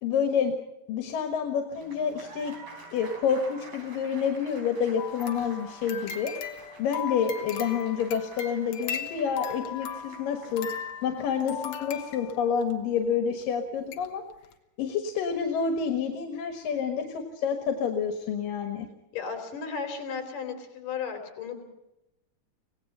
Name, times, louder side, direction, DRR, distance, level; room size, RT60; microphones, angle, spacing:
voice 1, 0.0-0.5 0.9-2.5 2.9-6.3 6.8-14.2 14.8-18.9, left 7 dB, 90° left, 5 dB, 3.4 m, -28 dB
Applause, 1.7-12.1, right 3 dB, 70° right, 5.6 m, -49 dB
sound 1, 5.0-12.7 13.4-13.5 13.9-14.1 14.4-14.5, left 8 dB, 60° left, 2.2 m, -38 dB
voice 2, 19.1-21.6, left 6 dB, 75° left, 6 dB, 4.8 m, -35 dB
25.5 x 18.0 x 5.6 m, 0.90 s
omnidirectional pair, 3.8 m